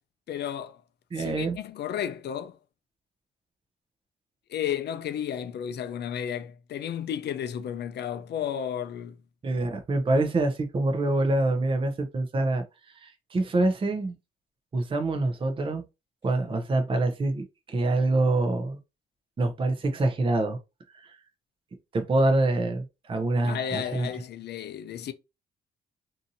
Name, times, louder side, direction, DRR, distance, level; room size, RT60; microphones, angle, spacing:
voice 1, 0.3-0.8 1.1-2.6 4.5-9.2 23.4-25.1, left 9 dB, 60° left, 0.5 m, -33 dB
voice 2, 1.1-1.6 9.4-12.6 13.0-14.1 14.7-15.8 16.2-18.8 19.4-20.6 21.0-21.2 21.9-24.1, right 2 dB, 25° right, 0.6 m, -25 dB
2.7 x 2.6 x 2.6 m
cardioid pair, 90°, 20 cm